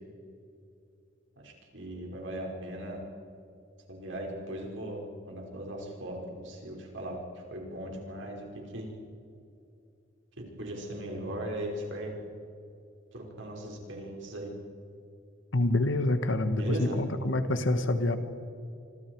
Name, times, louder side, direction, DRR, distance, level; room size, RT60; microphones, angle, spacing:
voice 1, 1.4-3.0 3.9-5.0 5.3-8.9 10.6-12.2 13.1-14.5 16.5-17.0, right 1 dB, 70° right, 0 dB, 5.3 m, -38 dB
voice 2, 15.5-18.2, left 2 dB, 70° left, 9 dB, 1.5 m, -27 dB
26.5 x 26.0 x 4.8 m, 2.6 s
head